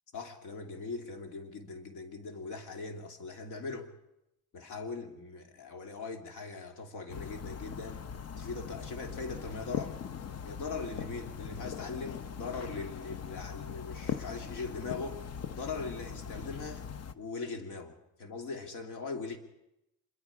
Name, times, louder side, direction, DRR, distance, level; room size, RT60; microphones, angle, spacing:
voice 1, 0.1-3.9 4.5-8.1 8.4-10.0 10.4-15.3 15.5-16.9 17.1-19.4, left 4 dB, 90° left, 5 dB, 2.6 m, -40 dB
sound 1, 7.1-17.1, left 7 dB, 55° left, 1.0 m, -40 dB
26.0 x 23.0 x 5.0 m, 0.89 s
cardioid pair, 90°, 30 cm